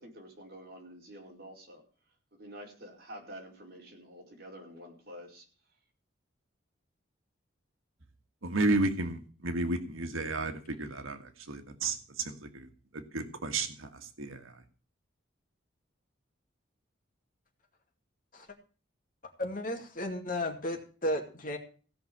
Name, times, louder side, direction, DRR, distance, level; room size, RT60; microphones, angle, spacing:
voice 1, 0.0-1.8 2.3-5.4, equal, 50° right, -1 dB, 4.9 m, -48 dB
voice 2, 8.4-12.7 12.9-14.6, right 2 dB, 90° right, 6 dB, 1.7 m, -33 dB
voice 3, 19.4-21.6, left 1 dB, 40° left, 4 dB, 2.4 m, -34 dB
16.5 x 5.8 x 8.6 m, 0.38 s
head